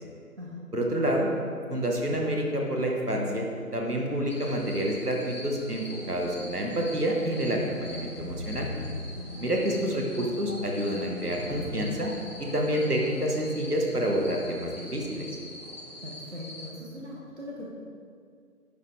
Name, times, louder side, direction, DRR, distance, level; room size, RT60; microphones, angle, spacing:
voice 1, 0.7-1.3 1.7-3.5 3.7-8.7 9.4-12.1 12.4-15.3, equal, 70° right, 0 dB, 1.6 m, -28 dB
sound 1, 4.3-16.7, left 1 dB, 75° left, 1.6 m, -42 dB
voice 2, 9.2-9.5 16.0-17.7, left 1 dB, 45° right, -4 dB, 1.3 m, -41 dB
10.5 x 6.6 x 3.5 m, 2.2 s
figure-of-eight pair, 175°, 47 cm